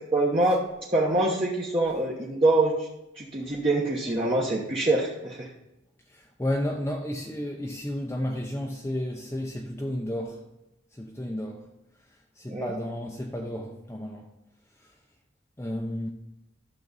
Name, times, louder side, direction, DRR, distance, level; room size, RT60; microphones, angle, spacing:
voice 1, 0.1-0.6 0.9-2.9 3.2-5.5 12.5-12.7, right 2 dB, 30° right, 1.0 m, -24 dB
voice 2, 6.1-10.4 10.9-11.7 12.4-14.3 15.6-16.1, left 1 dB, 15° left, 0.6 m, -32 dB
12.0 x 6.6 x 4.0 m
head